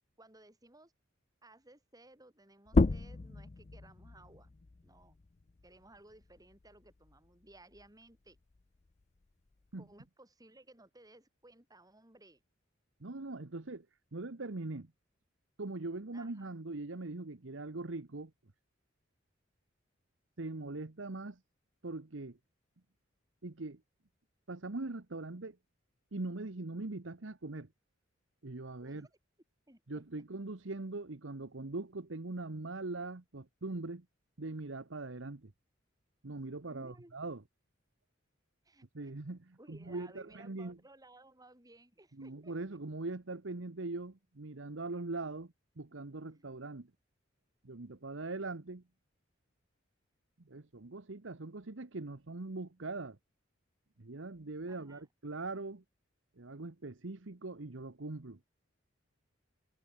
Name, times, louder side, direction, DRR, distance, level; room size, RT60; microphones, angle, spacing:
voice 1, 0.2-0.9 1.4-4.5 4.8-5.2 5.6-8.4 9.8-12.4 16.1-16.6 28.8-29.1 29.7-30.0 36.7-37.2 38.6-39.1 39.6-42.5 46.2-46.5 54.7-55.1, right 2 dB, 20° right, 6.3 m, -59 dB
sound 1, 2.7-7.9 8.3-10.1, left 3 dB, 35° left, 0.5 m, -35 dB
voice 2, 13.0-13.9 14.1-14.9 15.6-18.3 20.4-21.4 21.8-22.4 23.4-23.8 24.5-25.6 26.1-27.7 28.4-29.1 29.9-34.0 34.4-35.5 36.2-37.4 38.9-40.8 42.2-46.9 47.6-48.8 50.4-53.2 54.0-55.8 56.4-58.4, right 2 dB, 70° right, 1.1 m, -41 dB
head